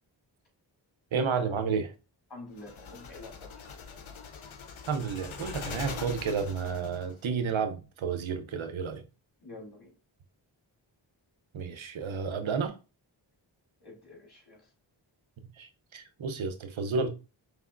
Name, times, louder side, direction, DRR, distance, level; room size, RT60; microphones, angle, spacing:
voice 1, 1.1-1.9 4.9-9.0 11.5-12.8 15.6-17.1, right 5 dB, 75° right, 0.7 m, -31 dB
voice 2, 2.3-3.6 9.4-9.9 13.8-14.6, left 2 dB, 50° left, 2.3 m, -47 dB
sound 1, 2.6-7.1, left 5 dB, 75° left, 0.7 m, -42 dB
5.0 x 3.4 x 2.4 m
cardioid pair, 40°, 48 cm